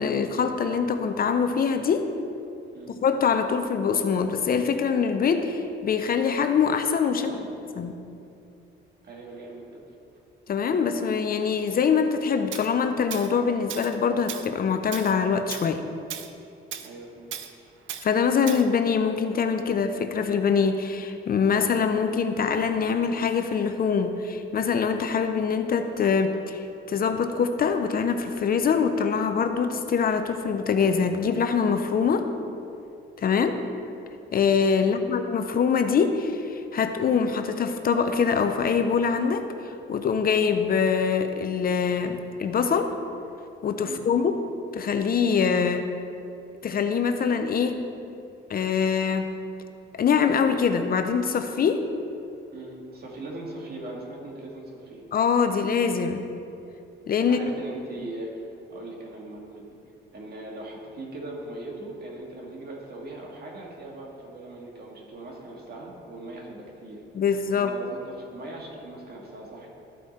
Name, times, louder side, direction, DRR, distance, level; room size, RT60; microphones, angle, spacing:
voice 1, 0.0-2.1 3.0-7.3 7.8-8.0 10.5-15.8 18.0-32.3 33.2-33.5 34.3-42.9 43.6-44.3 44.7-45.9 46.6-47.8 48.5-49.3 50.0-51.8 55.1-56.2 57.1-57.4 67.1-67.7, left 6 dB, 50° left, 7 dB, 0.6 m, -24 dB
voice 2, 7.1-7.5 9.0-9.8 16.8-17.3 34.8-35.1 43.8-44.0 52.5-55.1 57.2-59.8 60.1-67.0 67.5-69.7, right 2 dB, 50° right, -2 dB, 1.9 m, -40 dB
Tools, 12.5-12.7 13.1-13.3 13.7-14.0 14.3-14.5 14.9-15.1 15.5-15.7 16.1-16.3 16.7-16.9 17.3-17.5 17.9-18.1 18.5-18.7, right 10 dB, 75° right, 0.6 m, -36 dB
13.0 x 4.8 x 4.2 m, 2.6 s
cardioid pair, 90°, 20 cm